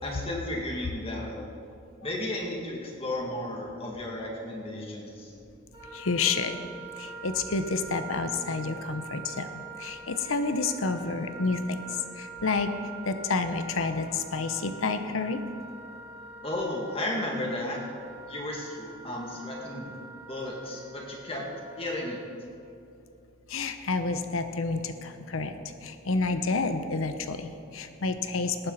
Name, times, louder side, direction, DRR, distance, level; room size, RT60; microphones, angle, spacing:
voice 1, 0.0-1.5 2.0-5.3 16.4-17.8 18.3-19.9 20.3-22.2, left 1 dB, 30° left, -2 dB, 2.2 m, -34 dB
Wind instrument woodwind instrument, 5.7-22.3, right 4 dB, 25° right, 3.2 m, -44 dB
voice 2, 5.9-6.6 7.0-9.5 9.8-11.8 12.2-12.7 13.1-15.4 23.5-25.5 25.8-28.7, left 4 dB, 85° left, 9 dB, 0.8 m, -29 dB
18.0 x 9.9 x 4.1 m, 2.7 s
head